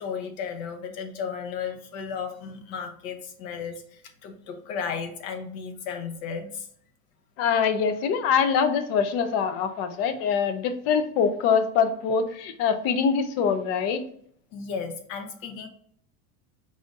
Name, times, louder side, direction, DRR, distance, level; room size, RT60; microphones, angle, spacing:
voice 1, 0.0-6.7 14.5-15.7, left 6 dB, 65° left, 5 dB, 1.0 m, -34 dB
voice 2, 7.4-14.0, left 6 dB, 35° left, 10 dB, 0.4 m, -24 dB
4.8 x 2.5 x 3.9 m, 0.63 s
supercardioid pair, 155°, 44 cm